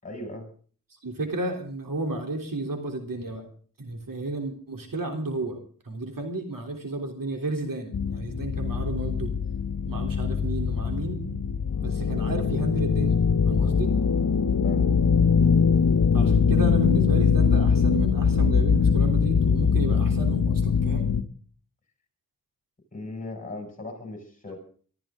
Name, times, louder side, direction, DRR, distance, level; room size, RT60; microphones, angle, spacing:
voice 1, 0.0-0.5 14.6-14.9 22.9-24.6, left 2 dB, 20° left, 3 dB, 6.6 m, -38 dB
voice 2, 1.0-3.5 3.8-5.6 5.8-9.3 9.9-11.2 11.8-13.9 16.1-21.1, right 2 dB, 65° right, 4 dB, 3.4 m, -32 dB
sound 1, 7.9-21.2, left 6 dB, 65° left, 1.2 m, -22 dB
23.5 x 13.5 x 3.8 m, 0.43 s
wide cardioid pair, 70°, 35 cm